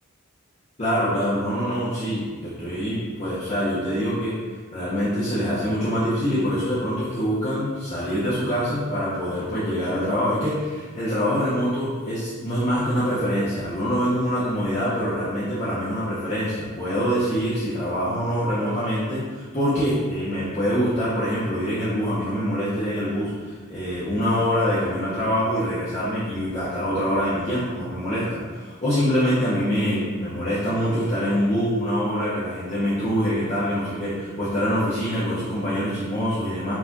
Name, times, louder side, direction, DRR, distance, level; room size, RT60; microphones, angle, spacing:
voice 1, 0.8-4.3 4.7-36.8, equal, 30° left, -11 dB, 0.8 m, -25 dB
4.7 x 2.4 x 4.0 m, 1.4 s
head